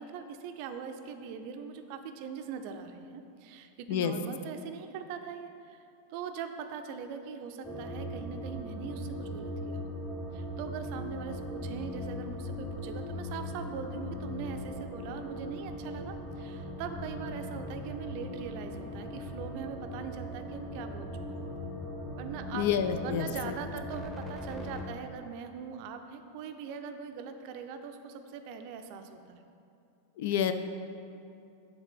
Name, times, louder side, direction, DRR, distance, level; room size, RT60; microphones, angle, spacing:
voice 1, 0.0-5.8 6.1-9.9 10.3-21.7 22.2-22.7 23.0-29.4, right 6 dB, 45° right, 7 dB, 0.5 m, -41 dB
sound 1, 7.6-24.9, left 1 dB, 5° left, 0.8 m, -39 dB
voice 2, 22.5-23.5 30.2-30.5, left 8 dB, 50° left, 10 dB, 0.3 m, -29 dB
7.0 x 3.9 x 5.4 m, 2.6 s
figure-of-eight pair, 90°, 0 cm